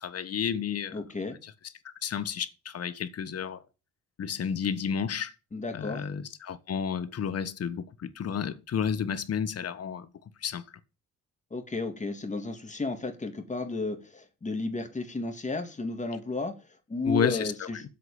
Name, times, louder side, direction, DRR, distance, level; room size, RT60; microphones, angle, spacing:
voice 1, 0.0-1.0 1.4-1.5 2.0-3.6 4.2-5.3 5.7-10.1 10.4-10.6 17.0-17.7, left 7 dB, 55° left, 1.3 m, -31 dB
voice 2, 0.9-1.4 5.5-6.0 11.5-16.5 16.9-17.8, left 3 dB, 25° left, 2.7 m, -33 dB
8.0 x 7.7 x 7.1 m
cardioid pair, 90°, 30 cm